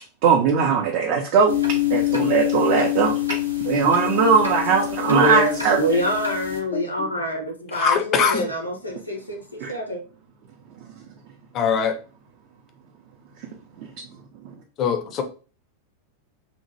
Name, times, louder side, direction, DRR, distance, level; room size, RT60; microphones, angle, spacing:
voice 1, 0.2-1.5 1.9-3.2 3.7-5.8 9.6-9.7 13.8-13.9, right 6 dB, 45° right, 2 dB, 0.4 m, -19 dB
sound 1, 1.5-6.6, left 14 dB, 85° right, 0.6 m, -26 dB
voice 2, 5.1-10.0, equal, 85° left, 2 dB, 0.7 m, -25 dB
voice 3, 7.7-8.5 11.5-12.0 14.8-15.2, left 6 dB, 30° left, 7 dB, 0.4 m, -22 dB
2.9 x 2.1 x 2.8 m, 0.37 s
figure-of-eight pair, 90°, 0 cm